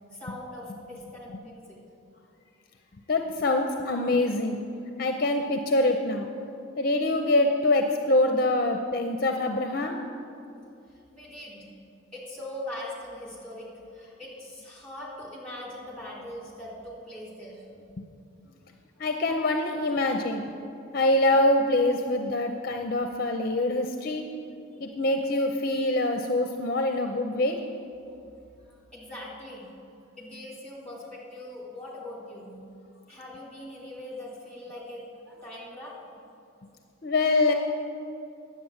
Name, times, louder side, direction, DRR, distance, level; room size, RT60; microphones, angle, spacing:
voice 1, 0.1-1.8 10.9-11.7 12.1-17.6 24.7-24.8 28.6-29.7 30.2-32.6 33.1-36.0, left 1 dB, 5° left, -4 dB, 2.6 m, -41 dB
voice 2, 3.1-4.6 5.0-6.3 6.8-10.0 19.0-20.5 20.9-24.2 24.8-27.6 37.0-37.5, left 2 dB, 45° left, 4 dB, 0.5 m, -25 dB
10.0 x 8.1 x 7.2 m, 2.6 s
head